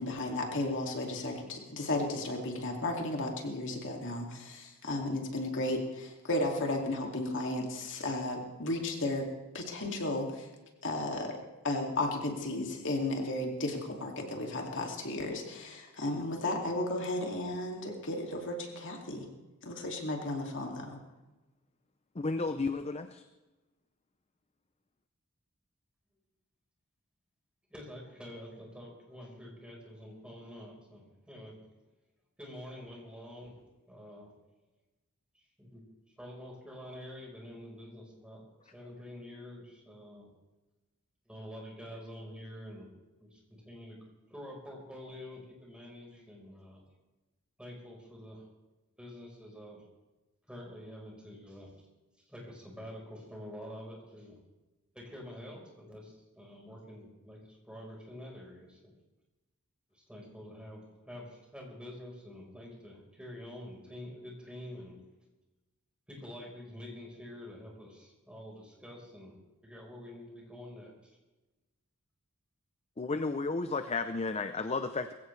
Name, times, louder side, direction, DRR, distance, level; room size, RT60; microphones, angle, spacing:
voice 1, 0.0-9.3 9.5-10.5 10.8-11.4 11.6-19.3 19.6-21.0, left 2 dB, 60° left, 1 dB, 2.5 m, -34 dB
voice 2, 22.2-23.2 73.0-75.1, left 3 dB, 30° left, 9 dB, 0.6 m, -33 dB
voice 3, 27.7-31.6 32.4-33.6 33.9-34.3 35.6-35.8 36.2-40.3 41.3-42.9 43.2-46.8 47.6-48.5 49.0-49.9 50.5-51.7 52.3-54.4 54.9-58.9 59.9-65.0 66.1-70.9, left 1 dB, 5° right, -2 dB, 4.5 m, -47 dB
21.5 x 16.0 x 3.3 m, 1.1 s
head